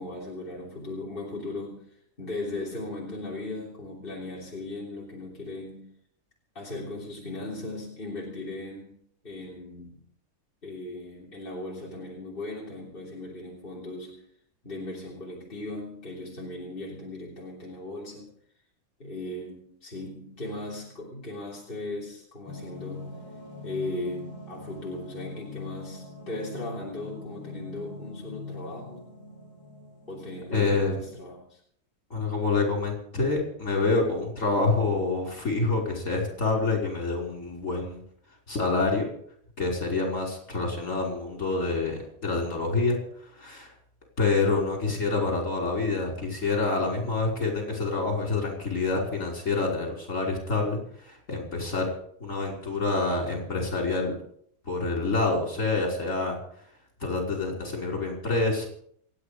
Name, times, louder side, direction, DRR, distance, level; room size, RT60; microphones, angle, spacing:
voice 1, 0.0-5.9 6.6-8.9 9.2-10.0 10.6-14.2 14.6-18.3 19.0-23.1 23.6-29.1 30.1-31.6, left 2 dB, 35° left, -4 dB, 3.6 m, -37 dB
sound 1, 22.5-31.2, left 3 dB, 15° left, 4.5 m, -42 dB
voice 2, 30.5-30.9 32.1-38.0 38.5-39.0 39.6-43.0 43.4-43.7 44.2-51.9 52.2-54.1 54.7-56.4 57.0-58.7, left 3 dB, 55° left, 0 dB, 5.7 m, -27 dB
27.5 x 9.6 x 5.1 m, 0.65 s
omnidirectional pair, 1.6 m